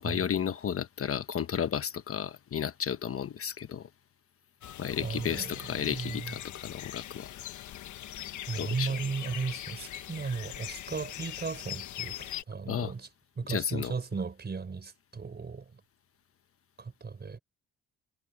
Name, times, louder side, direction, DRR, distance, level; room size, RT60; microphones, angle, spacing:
voice 1, 0.0-3.9 4.8-7.3 8.6-8.9 12.7-12.9 13.5-13.9, left 8 dB, 45° left, 1.1 m, -33 dB
sound 1, 4.6-12.4, left 12 dB, 75° left, 1.3 m, -41 dB
voice 2, 5.0-6.3 8.5-13.1 13.4-15.8 16.8-17.4, right 5 dB, 35° right, 4.4 m, -36 dB
cardioid pair, 90°, 30 cm